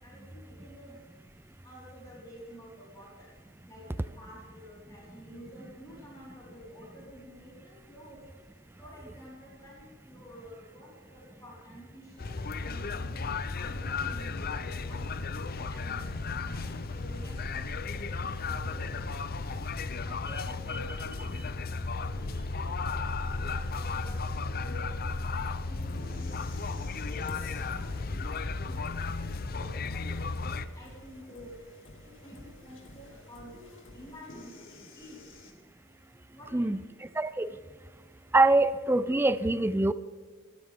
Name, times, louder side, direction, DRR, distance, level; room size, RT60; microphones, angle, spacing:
voice 1, 0.0-1.0 1.6-3.3 3.7-8.2 8.8-15.2 15.7-19.2 19.6-21.5 22.1-23.0 23.4-28.9 29.2-30.3 30.7-31.5 32.0-34.5 34.9-35.2 36.3-36.9, equal, 20° left, -6 dB, 4.6 m, -50 dB
sound 1, 12.2-30.7, left 4 dB, 45° left, 0.7 m, -34 dB
sound 2, 20.4-35.5, left 1 dB, 65° left, 2.8 m, -52 dB
voice 2, 37.2-37.5 38.3-39.9, right 2 dB, 10° right, 14 dB, 0.4 m, -24 dB
23.5 x 13.0 x 3.6 m, 1.5 s
head